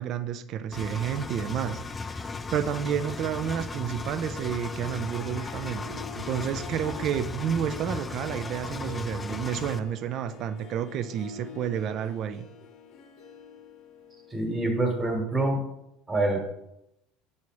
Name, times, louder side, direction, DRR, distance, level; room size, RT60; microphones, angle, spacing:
voice 1, 0.0-12.4, right 9 dB, 45° right, 12 dB, 0.4 m, -30 dB
Engine, 0.7-9.8, left 4 dB, 20° left, 0.3 m, -36 dB
Harp, 4.0-15.2, left 6 dB, 55° left, 0.9 m, -46 dB
voice 2, 14.3-15.6 16.1-16.5, right 2 dB, 20° right, 2 dB, 1.4 m, -26 dB
7.0 x 3.2 x 4.6 m, 0.85 s
supercardioid pair, 130°, 0 cm